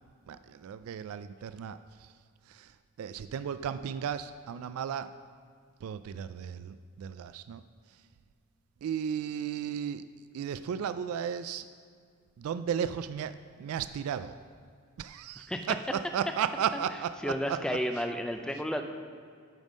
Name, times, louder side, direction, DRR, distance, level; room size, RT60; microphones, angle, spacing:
voice 1, 0.3-2.1 2.5-5.1 5.8-7.6 8.8-10.0 10.3-11.7 12.4-14.4 15.0-17.6, right 8 dB, 85° right, 12 dB, 0.3 m, -34 dB
voice 2, 17.2-18.8, equal, 5° left, 5 dB, 0.4 m, -32 dB
9.2 x 5.3 x 6.2 m, 2.1 s
head